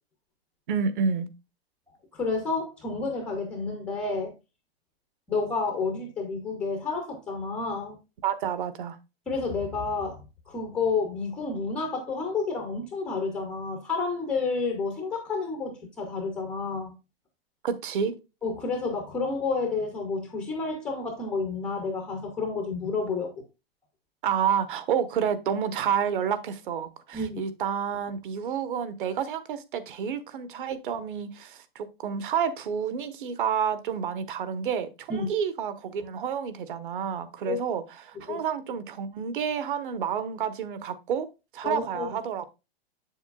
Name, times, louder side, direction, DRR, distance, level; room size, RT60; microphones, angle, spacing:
voice 1, 0.7-1.3 8.2-9.0 17.6-18.1 24.2-41.3 41.5-42.5, right 7 dB, 55° right, 1.0 m, -29 dB
voice 2, 2.1-4.3 5.3-8.0 9.3-16.9 18.4-23.3 27.1-27.4 35.1-35.3 37.5-37.6 38.3-38.4 41.6-42.2, left 4 dB, 5° left, 0.3 m, -30 dB
7.5 x 7.0 x 2.2 m
hypercardioid pair, 160°, 31 cm